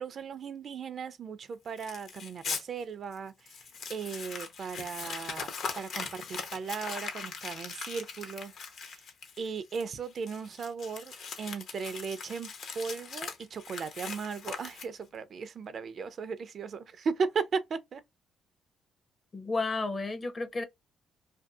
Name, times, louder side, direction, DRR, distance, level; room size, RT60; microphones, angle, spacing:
voice 1, 0.0-3.5 3.9-8.5 8.8-8.9 9.4-11.1 11.4-12.5 12.7-18.0, right 5 dB, 55° right, 0.4 m, -36 dB
Crumpling crinkling, 1.8-2.6 3.1-3.2 3.5-15.2, left 5 dB, 65° left, 0.8 m, -40 dB
voice 2, 19.3-20.6, left 3 dB, 35° left, 0.6 m, -32 dB
2.6 x 2.5 x 2.3 m
cardioid pair, 90°, 0 cm